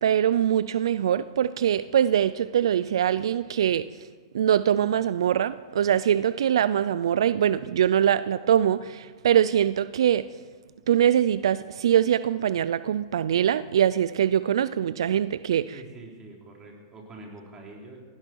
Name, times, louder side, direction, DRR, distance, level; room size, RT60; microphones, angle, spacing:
voice 1, 0.0-3.9 4.3-10.3 10.9-15.7, right 9 dB, 80° right, 16 dB, 0.4 m, -23 dB
voice 2, 15.7-18.0, right 2 dB, 20° right, -1 dB, 4.0 m, -45 dB
18.0 x 16.0 x 4.7 m, 1.5 s
hypercardioid pair, 130°, 3 cm